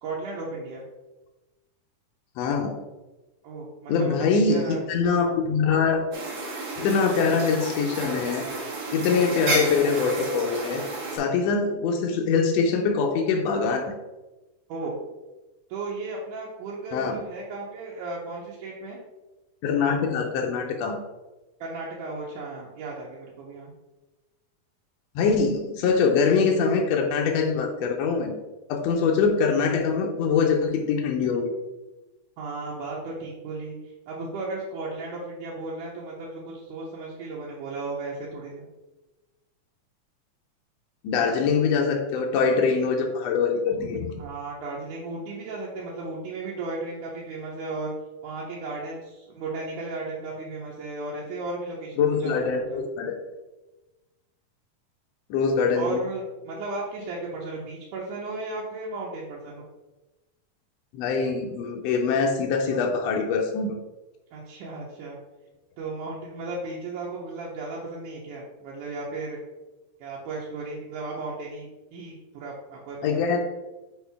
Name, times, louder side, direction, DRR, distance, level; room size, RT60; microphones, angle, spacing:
voice 1, 0.0-0.8 3.4-4.8 14.7-14.9 15.7-19.0 21.6-23.7 32.4-38.7 44.2-47.9 48.2-52.8 55.7-59.6 64.3-65.2 65.8-69.4 70.0-73.4, right 3 dB, 85° right, -5 dB, 2.4 m, -35 dB
voice 2, 2.4-2.8 3.9-6.0 6.8-8.5 8.9-10.8 11.1-13.9 16.9-17.2 19.6-21.0 25.1-28.4 28.7-31.5 41.0-44.2 52.0-53.1 55.3-56.0 60.9-63.8 73.0-73.4, left 5 dB, 80° left, 2 dB, 1.5 m, -23 dB
sound 1, 6.1-11.2, right 2 dB, 55° right, 1.6 m, -31 dB
6.5 x 4.5 x 3.4 m, 1.1 s
omnidirectional pair, 3.6 m